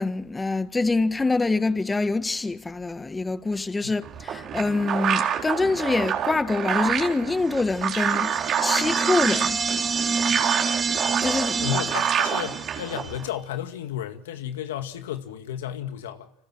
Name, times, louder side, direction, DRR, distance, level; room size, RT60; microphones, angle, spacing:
voice 1, 0.0-9.6 11.2-11.6, left 3 dB, 15° left, 1.5 m, -25 dB
sound 1, 4.0-13.3, right 9 dB, 55° right, 4.2 m, -27 dB
sound 2, 7.7-13.1, right 5 dB, 30° right, 1.5 m, -28 dB
voice 2, 11.6-16.3, left 11 dB, 85° left, 2.0 m, -32 dB
29.5 x 26.0 x 6.3 m
hypercardioid pair, 80°, 0 cm